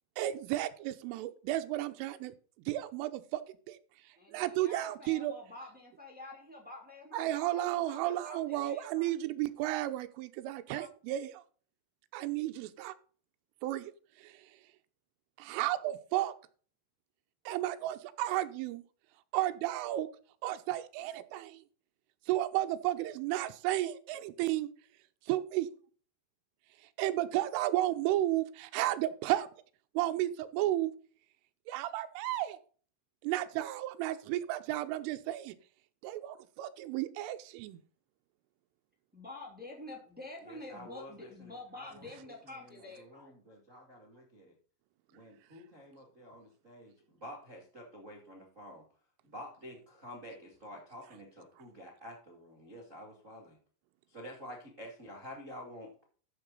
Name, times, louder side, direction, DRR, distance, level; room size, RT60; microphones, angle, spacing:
voice 1, 0.2-2.3 2.7-3.4 3.7-3.8 4.3-5.3 7.1-11.4 12.1-12.9 13.6-13.9 14.2-14.4 15.4-16.3 17.5-18.8 19.3-20.1 20.4-21.6 22.3-24.7 25.3-25.7 27.0-29.5 29.9-30.9 31.7-32.6 33.2-35.5 36.0-37.8, right 14 dB, 80° right, 10 dB, 3.3 m, -33 dB
voice 2, 4.1-9.1 10.7-10.9 39.1-43.3, left 2 dB, 5° right, 0 dB, 1.2 m, -48 dB
voice 3, 40.4-44.5 45.1-48.8 49.2-53.6 54.1-56.0, equal, 55° right, 0 dB, 0.8 m, -49 dB
13.0 x 6.8 x 3.9 m, 0.43 s
omnidirectional pair, 5.8 m